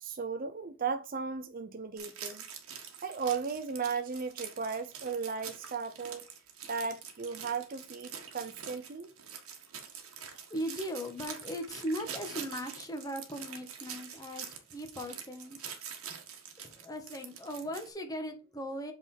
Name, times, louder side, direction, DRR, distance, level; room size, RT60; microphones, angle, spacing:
voice 1, 0.0-2.4 3.0-6.2 6.7-9.1, right 5 dB, 40° right, 0.5 m, -36 dB
sound 1, 2.0-17.9, right 7 dB, 80° right, 1.5 m, -45 dB
voice 2, 10.5-15.7 16.1-16.2 16.8-18.9, equal, 15° left, 1.4 m, -38 dB
8.0 x 4.1 x 4.4 m
head